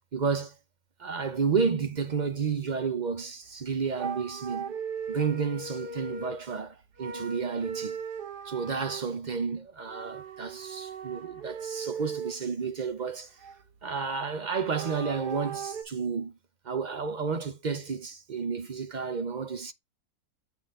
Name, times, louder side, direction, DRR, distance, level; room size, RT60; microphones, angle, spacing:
voice 1, 0.1-0.5 1.0-4.7 5.1-8.0 8.4-13.4 13.8-16.4 16.6-19.7, right 5 dB, 50° right, 0.5 m, -31 dB
sound 1, 3.5-3.6 4.0-6.5 7.0-9.1 9.8-12.4 12.9-13.8 14.5-15.8, right 6 dB, 85° right, 1.7 m, -38 dB
8.1 x 4.2 x 3.6 m
omnidirectional pair, 1.6 m